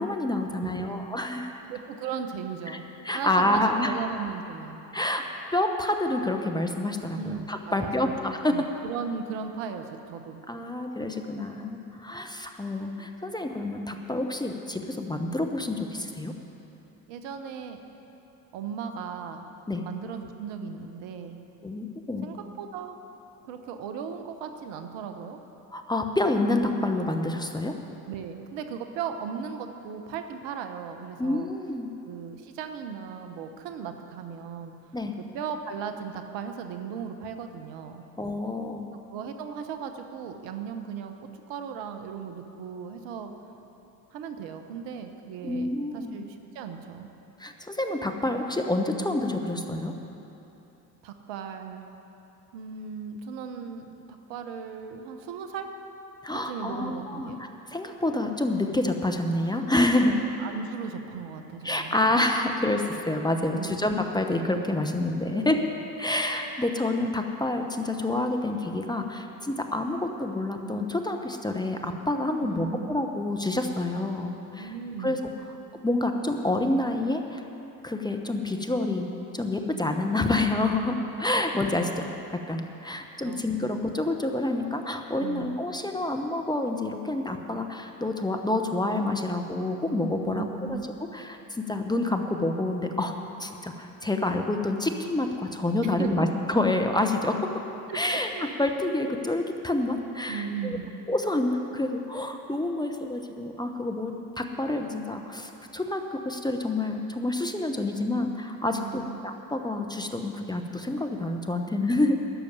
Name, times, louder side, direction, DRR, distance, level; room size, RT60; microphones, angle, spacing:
voice 1, 0.0-1.6 2.7-2.8 3.0-3.9 4.9-5.2 5.5-8.5 10.5-16.3 19.7-19.8 21.6-22.3 25.7-27.7 31.2-31.9 34.9-35.1 38.2-39.0 45.4-46.2 47.4-49.9 56.2-60.2 61.6-65.6 65.9-74.7 75.0-75.2 75.8-77.4 77.8-82.1 82.5-90.8 91.1-93.1 93.4-97.4 97.9-98.3 98.6-100.8 101.1-112.2, left 2 dB, 10° left, 4 dB, 1.0 m, -28 dB
voice 2, 0.6-0.9 1.7-2.8 3.1-4.8 7.2-8.2 8.5-10.4 17.1-17.8 18.5-19.5 19.8-21.4 22.2-23.0 23.4-25.4 28.1-31.5 32.0-34.8 35.3-38.1 39.1-41.1 41.5-43.3 44.1-47.1 51.0-51.9 52.5-55.7 56.3-57.4 60.0-62.0 63.5-63.9 65.3-65.8 72.4-72.9 74.6-75.1 83.2-83.7 85.2-85.6 90.2-90.8 95.8-96.3 97.9-98.5 100.3-100.9 108.7-109.2, right 6 dB, 60° right, 6 dB, 1.1 m, -37 dB
12.0 x 6.9 x 9.5 m, 3.0 s
hypercardioid pair, 65°, 48 cm